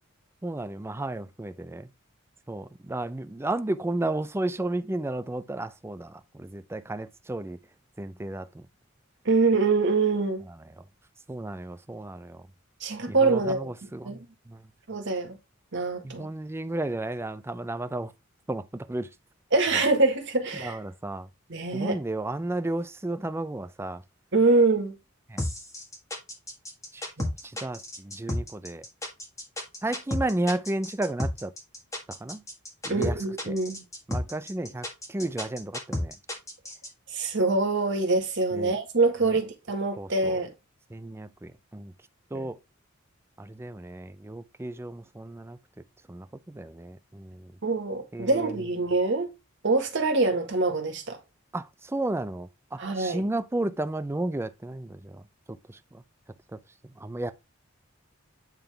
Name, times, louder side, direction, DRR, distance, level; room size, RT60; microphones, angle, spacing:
voice 1, 0.4-1.9 2.5-7.6 8.0-8.7 10.5-10.6 11.3-12.4 13.1-14.6 16.0-18.1 18.5-19.1 19.7-19.8 20.5-21.3 21.7-24.0 25.3-25.4 26.9-27.1 27.4-28.9 29.8-31.5 32.1-32.4 32.8-33.6 34.1-36.2 38.5-38.7 39.2-39.4 40.0-40.4 40.9-41.9 42.3-42.6 43.4-45.6 46.1-47.5 48.1-48.6 51.5-55.2 55.5-56.0 56.5-57.3, right 2 dB, 10° right, 0.5 m, -33 dB
voice 2, 9.3-10.4 12.8-13.7 14.0-14.2 14.9-15.4 15.7-16.3 19.5-20.8 21.5-22.0 24.3-25.0 27.2-27.3 32.9-33.8 37.1-40.5 42.3-42.5 47.6-49.3 49.6-51.2 52.8-53.2, right 3 dB, 60° right, 1.7 m, -25 dB
sound 1, 25.4-36.9, left 1 dB, 15° left, 1.7 m, -32 dB
9.0 x 3.8 x 3.3 m
head